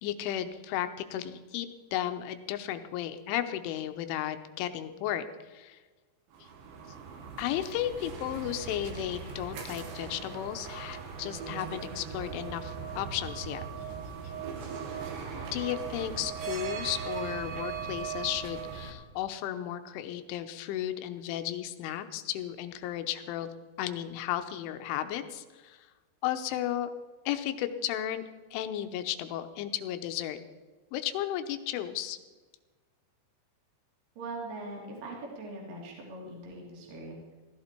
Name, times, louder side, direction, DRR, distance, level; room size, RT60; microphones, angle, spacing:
voice 1, 0.0-5.8 6.4-6.5 7.4-13.6 15.5-23.5 23.8-25.9 26.2-26.9 27.3-28.2 28.5-30.4 30.9-32.2, left 12 dB, 80° left, 9 dB, 3.3 m, -34 dB
sound 1, 6.3-18.9, right 6 dB, 70° right, 3.8 m, -39 dB
voice 2, 34.2-37.3, right 2 dB, 50° right, -2 dB, 4.1 m, -41 dB
16.5 x 14.0 x 4.5 m, 1.3 s
omnidirectional pair, 5.6 m